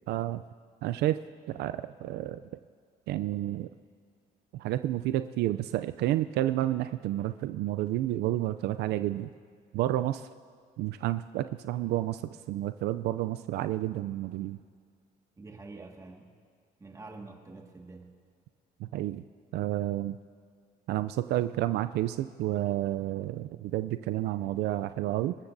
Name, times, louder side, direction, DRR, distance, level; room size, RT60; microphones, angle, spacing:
voice 1, 0.1-0.4 0.8-1.2 1.5-2.4 3.1-3.7 4.5-9.3 9.7-10.3 10.8-14.6 18.8-19.2 19.5-20.2 20.9-25.4, right 14 dB, 75° right, 12 dB, 0.4 m, -30 dB
voice 2, 15.4-16.3 16.8-18.1, right 3 dB, 20° right, 2 dB, 1.8 m, -46 dB
28.5 x 13.0 x 2.6 m, 2.1 s
cardioid pair, 110°, 17 cm